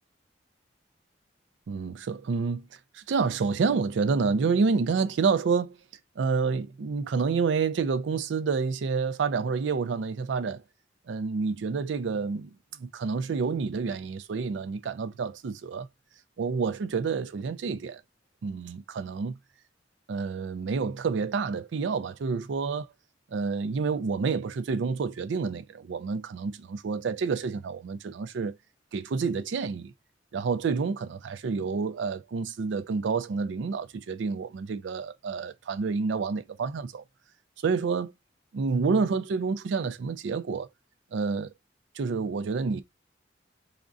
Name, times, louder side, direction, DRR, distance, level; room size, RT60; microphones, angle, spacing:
voice 1, 1.7-2.7 2.9-5.8 6.2-10.6 11.1-15.9 16.4-18.0 18.4-19.4 20.1-22.9 23.3-28.6 28.9-29.9 30.3-37.0 37.6-38.1 38.5-40.7 41.1-41.5 41.9-42.8, right 5 dB, 90° right, 0.4 m, -28 dB
3.5 x 2.1 x 2.5 m
head